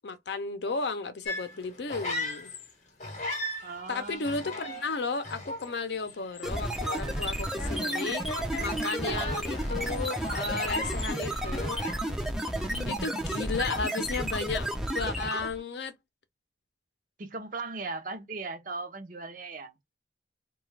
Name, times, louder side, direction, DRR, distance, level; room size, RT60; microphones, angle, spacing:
voice 1, 0.0-2.5 3.9-8.3 8.6-11.8 12.8-15.9, left 4 dB, 65° left, 0.6 m, -34 dB
sound 1, 1.2-2.7 3.0-12.3 12.6-13.0, left 1 dB, 40° left, 0.8 m, -38 dB
voice 2, 3.6-4.6 9.0-9.3 12.5-13.0 17.2-19.7, right 3 dB, 45° right, 0.6 m, -38 dB
sound 2, 6.4-15.6, right 1 dB, 5° right, 0.4 m, -32 dB
2.4 x 2.3 x 3.1 m
head